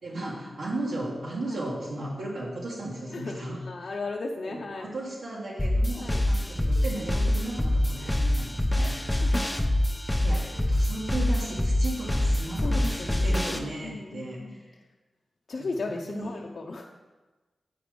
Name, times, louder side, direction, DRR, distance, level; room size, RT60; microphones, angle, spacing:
voice 1, 0.0-3.9 4.5-9.3 10.2-14.7 15.6-16.4, right 1 dB, 80° right, -7 dB, 1.9 m, -36 dB
voice 2, 3.1-4.9 6.0-6.2 8.0-8.2 8.8-9.5 10.3-10.6 12.6-13.3 13.5-14.6 15.5-16.9, left 3 dB, 65° left, -1 dB, 0.6 m, -36 dB
sound 1, 5.6-13.6, left 1 dB, 10° left, 0.9 m, -25 dB
8.8 x 5.1 x 5.1 m, 1.2 s
cardioid pair, 55°, 0 cm